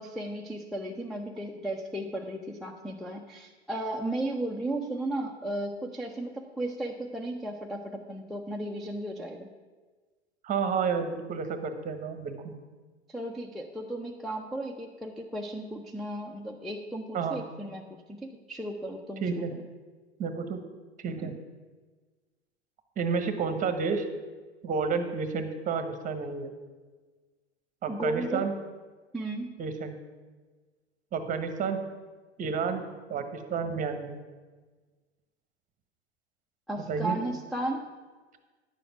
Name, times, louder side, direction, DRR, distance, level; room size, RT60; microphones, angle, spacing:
voice 1, 0.0-9.5 13.1-17.8 18.1-19.4 21.2-21.3 27.9-28.5 29.1-29.5 36.7-37.9, right 1 dB, ahead, 2 dB, 0.5 m, -35 dB
voice 2, 10.4-12.5 17.1-17.4 19.2-19.5 20.2-20.6 21.0-21.3 23.0-24.1 24.6-26.5 27.8-28.5 29.6-30.0 31.1-31.8 32.4-34.2 36.8-37.2, right 5 dB, 25° right, 8 dB, 1.0 m, -30 dB
10.5 x 7.0 x 5.8 m, 1.4 s
figure-of-eight pair, 90°, 34 cm